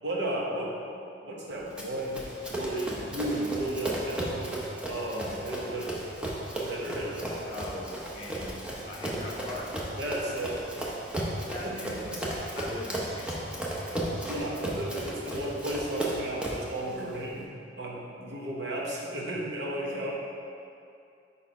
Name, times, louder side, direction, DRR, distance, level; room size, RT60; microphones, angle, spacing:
voice 1, 0.0-0.9 1.2-5.9 6.5-7.2 10.0-10.9 11.6-12.2 14.3-20.1, right 1 dB, 65° right, -3 dB, 1.0 m, -34 dB
Run, 1.8-16.7, right 1 dB, 5° right, 0.7 m, -35 dB
voice 2, 7.5-7.9 8.1-8.6 8.9-9.7 11.4-12.2 12.5-14.3, left 2 dB, 35° left, -2 dB, 0.8 m, -41 dB
5.3 x 4.3 x 4.7 m, 2.5 s
head